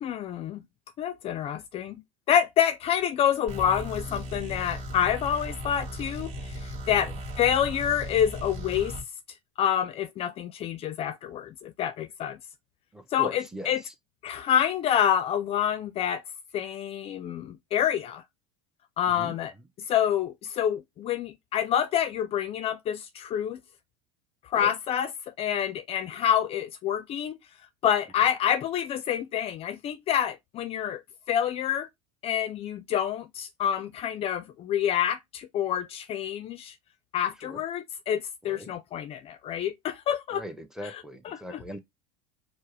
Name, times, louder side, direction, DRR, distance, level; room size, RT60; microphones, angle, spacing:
voice 1, 0.0-0.6 1.0-2.0 2.3-7.1 7.4-9.0 9.6-12.4 13.1-13.8 14.2-16.2 16.5-18.2 19.0-19.5 19.9-23.6 24.5-27.4 27.8-31.0 31.3-31.9 32.2-36.7 37.1-40.4 40.8-41.6, left 9 dB, 40° left, 0.5 m, -27 dB
sound 1, 3.5-9.0, equal, 45° right, 2.0 m, -37 dB
voice 2, 12.9-13.9 19.1-19.4 24.5-24.7 37.4-37.6 38.4-38.7 40.3-41.8, equal, 5° right, 0.7 m, -40 dB
4.6 x 2.0 x 4.5 m
hypercardioid pair, 95°, 16 cm